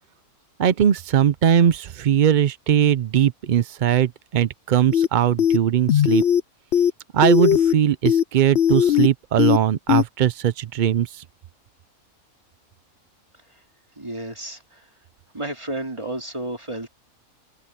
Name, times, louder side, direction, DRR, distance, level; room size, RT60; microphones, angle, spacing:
voice 1, 0.6-6.2 7.1-11.2, right 9 dB, 80° right, 0.4 m, -20 dB
sound 1, 4.9-5.1 5.4-5.6 5.9-6.4 6.7-6.9 7.2-7.7 8.1-8.2 8.6-9.1 9.4-9.6 9.9-10.0, left 10 dB, 60° left, 0.7 m, -18 dB
voice 2, 14.0-14.8 15.3-16.9, right 1 dB, 20° right, 3.3 m, -32 dB
omnidirectional pair, 1.5 m